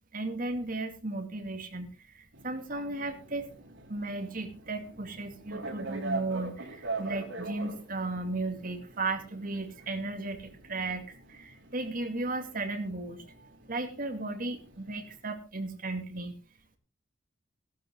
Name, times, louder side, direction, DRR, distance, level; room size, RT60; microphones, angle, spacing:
voice 1, 0.1-3.5 3.9-13.2 13.7-16.3, right 2 dB, 45° right, 6 dB, 2.4 m, -35 dB
sound 1, 2.3-15.2, right 3 dB, 80° right, 4.1 m, -43 dB
15.0 x 13.0 x 3.8 m, 0.33 s
head